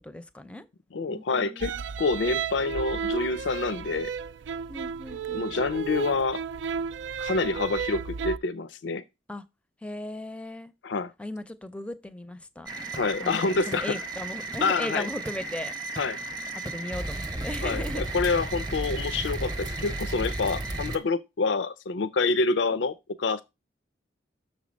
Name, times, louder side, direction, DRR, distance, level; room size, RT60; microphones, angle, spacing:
voice 1, 0.0-0.7 1.1-1.8 4.7-5.6 9.3-9.4 9.8-10.7 11.2-12.7 13.2-15.7 16.6-18.0 22.7-22.8, left 1 dB, 5° left, 0.5 m, -37 dB
voice 2, 0.9-1.7 2.0-4.1 5.3-6.4 7.2-9.0 10.8-11.1 12.9-14.0 14.6-15.1 16.0-16.2 17.6-23.4, left 3 dB, 85° left, 0.5 m, -27 dB
sound 1, 1.6-8.4, right 6 dB, 90° right, 0.3 m, -33 dB
sound 2, 12.7-21.0, right 2 dB, 25° right, 0.8 m, -34 dB
6.5 x 4.1 x 6.2 m
head